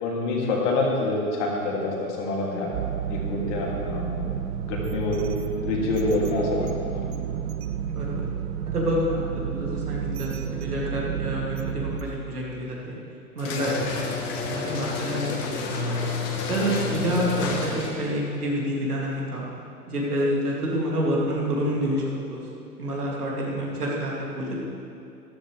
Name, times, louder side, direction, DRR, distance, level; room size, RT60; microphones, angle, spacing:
voice 1, 0.0-2.7 3.1-4.4 4.7-5.3 5.6-7.0, left 2 dB, 50° left, -3 dB, 2.8 m, -26 dB
sound 1, 2.7-12.0, right 9 dB, 40° right, 0.7 m, -31 dB
voice 2, 7.9-8.3 8.7-13.0 13.3-14.2 14.4-16.0 16.5-19.5 19.9-22.0 22.3-22.4 22.8-24.6, equal, 70° right, -4 dB, 3.0 m, -28 dB
sound 2, 13.4-18.1, left 4 dB, 30° left, 1.6 m, -30 dB
13.5 x 13.0 x 3.5 m, 2.5 s
figure-of-eight pair, 100°, 46 cm